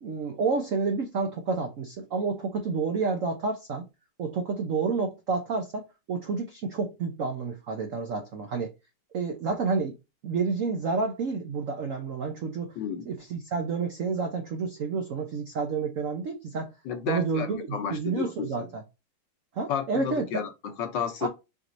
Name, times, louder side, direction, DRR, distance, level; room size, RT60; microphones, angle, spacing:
voice 1, 0.0-3.8 4.2-8.7 9.1-9.9 10.2-12.8 13.1-16.7 17.1-18.8 19.5-20.2 21.2-21.3, right 4 dB, 85° right, 0.7 m, -29 dB
voice 2, 12.8-13.1 16.8-18.7 19.7-21.3, left 7 dB, 65° left, 1.3 m, -32 dB
5.0 x 3.0 x 2.6 m
omnidirectional pair, 2.3 m